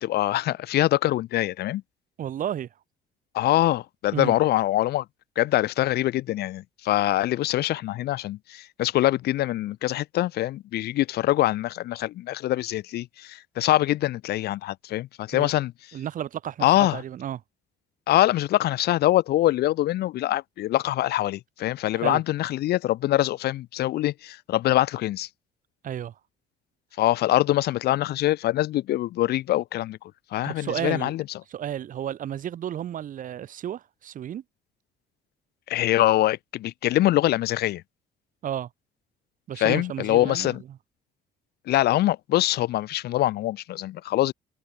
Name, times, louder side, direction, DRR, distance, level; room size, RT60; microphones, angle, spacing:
voice 1, 0.0-1.8 3.3-5.0 5.4-15.7 16.6-17.0 18.1-25.3 27.0-30.0 30.3-31.2 35.7-37.8 39.6-40.6 41.7-44.3, left 15 dB, 75° left, 2.5 m, -24 dB
voice 2, 2.2-2.7 4.1-4.3 15.3-15.5 15.9-16.7 16.9-17.4 21.9-22.2 25.8-26.1 30.4-31.1 31.5-34.4 38.4-38.7 39.5-40.6, right 10 dB, 50° right, 1.5 m, -32 dB
cardioid pair, 110°, 17 cm